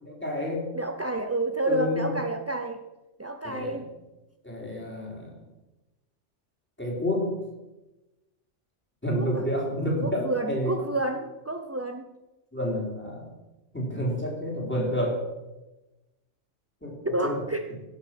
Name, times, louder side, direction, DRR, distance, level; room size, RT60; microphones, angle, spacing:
voice 1, 0.0-0.7 1.6-2.1 3.4-3.8 4.4-5.4 6.8-7.3 9.0-10.7 12.5-13.3 13.7-15.2 16.8-17.0 17.2-17.3, equal, 10° left, -2 dB, 3.7 m, -29 dB
voice 2, 0.7-2.8 3.2-3.9 9.1-9.5 10.0-12.1 17.0-17.7, right 2 dB, 20° right, 5 dB, 0.4 m, -29 dB
17.0 x 6.7 x 5.9 m, 1.0 s
omnidirectional pair, 1.3 m